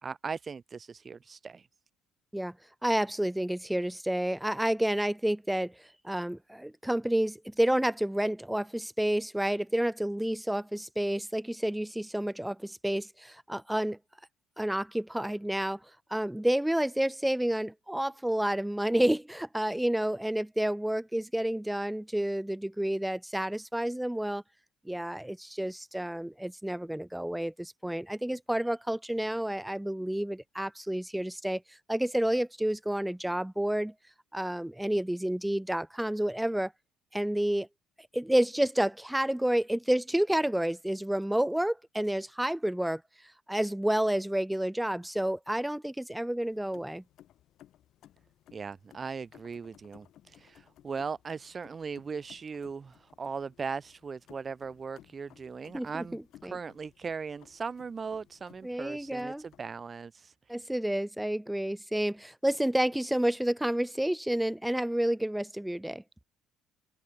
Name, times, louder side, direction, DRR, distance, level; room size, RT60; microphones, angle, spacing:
voice 1, 0.0-1.7 48.5-60.3, right 5 dB, 30° right, 0.5 m, -39 dB
voice 2, 2.8-14.0 14.6-15.8 16.1-24.4 24.8-31.6 31.9-33.9 34.3-36.7 37.1-37.7 38.1-43.0 43.5-47.0 55.7-56.6 58.6-59.4 60.5-66.0, right 1 dB, 5° right, 1.3 m, -30 dB
sound 1, 46.5-60.0, left 12 dB, 65° left, 4.3 m, -59 dB
open air
cardioid pair, 95°, 0 cm